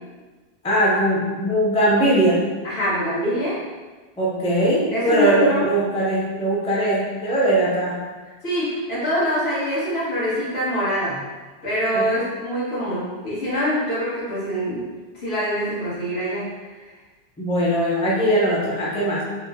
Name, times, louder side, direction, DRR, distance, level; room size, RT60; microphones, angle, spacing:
voice 1, 0.6-2.4 4.2-8.0 11.9-12.1 17.4-19.2, right 1 dB, 10° left, -6 dB, 0.4 m, -20 dB
voice 2, 2.6-3.6 4.9-5.7 8.4-11.2 11.6-16.5, equal, 75° left, -9 dB, 1.4 m, -24 dB
3.0 x 2.1 x 3.5 m, 1.3 s
omnidirectional pair, 1.1 m